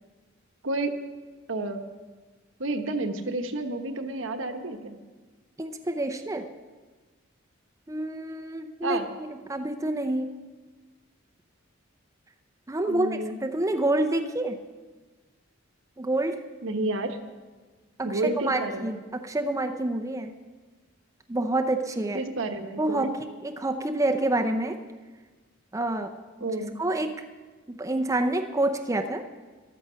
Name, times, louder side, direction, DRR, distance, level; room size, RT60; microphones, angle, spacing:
voice 1, 1.5-1.8 2.6-5.0 8.8-9.1 12.9-13.4 16.6-17.2 18.0-19.0 22.1-23.1 26.4-26.7, right 2 dB, 70° right, 6 dB, 1.1 m, -30 dB
voice 2, 5.6-6.5 7.9-10.3 12.7-14.6 16.0-16.4 18.0-20.3 21.3-22.2 22.8-24.8 25.7-26.1 26.4-26.5 26.8-27.2 27.7-29.2, right 2 dB, 15° right, 4 dB, 0.6 m, -28 dB
14.5 x 12.0 x 5.7 m, 1.4 s
head